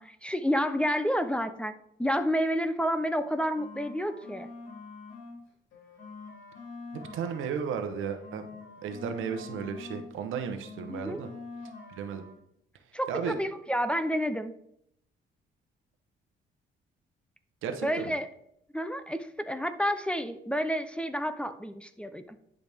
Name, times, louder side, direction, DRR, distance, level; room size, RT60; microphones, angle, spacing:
voice 1, 0.0-1.7 2.0-4.5 10.9-11.2 12.9-14.6 17.8-18.3 18.7-22.4, equal, 5° left, 10 dB, 0.6 m, -30 dB
sound 1, 3.1-5.4 5.7-10.1 10.3-12.4, left 4 dB, 70° left, 3.4 m, -46 dB
voice 2, 6.9-8.5 8.8-11.3 11.9-12.2 13.1-13.3 17.6-18.1, right 7 dB, 85° right, 7 dB, 1.0 m, -34 dB
11.0 x 5.1 x 3.5 m, 0.73 s
cardioid pair, 90°, 20 cm